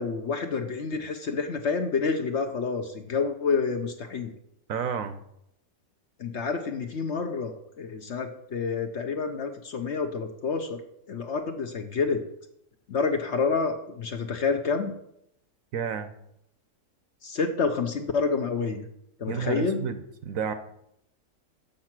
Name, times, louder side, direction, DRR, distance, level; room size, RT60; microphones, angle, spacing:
voice 1, 0.0-4.3 6.2-10.8 11.1-12.2 12.9-15.0 17.2-18.9 19.2-19.8, left 5 dB, 55° left, 6 dB, 0.9 m, -28 dB
voice 2, 4.7-5.2 15.7-16.1 19.3-20.5, right 7 dB, 65° right, 10 dB, 1.0 m, -31 dB
7.3 x 6.5 x 5.9 m, 0.77 s
omnidirectional pair, 1.7 m